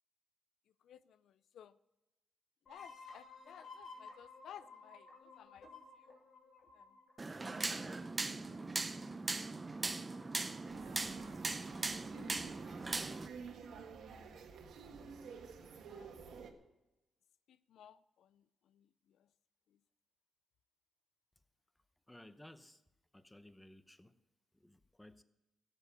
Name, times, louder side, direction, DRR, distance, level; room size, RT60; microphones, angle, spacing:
voice 1, 0.8-1.8 2.7-5.7 6.0-6.2 6.7-7.0 7.8-8.1 8.5-9.9 15.8-16.2 17.5-19.3 19.7-19.8, left 9 dB, 80° left, 0.4 m, -59 dB
sound 1, 2.7-8.1, left 4 dB, 60° left, 2.8 m, -55 dB
sound 2, 7.2-13.3, right 3 dB, 25° right, 0.7 m, -40 dB
sound 3, 10.6-16.5, right 5 dB, 80° right, 1.6 m, -51 dB
voice 2, 22.1-22.8 23.1-24.1 24.5-25.2, left 1 dB, 10° left, 0.8 m, -57 dB
16.0 x 7.5 x 6.9 m
cardioid pair, 100°, 0 cm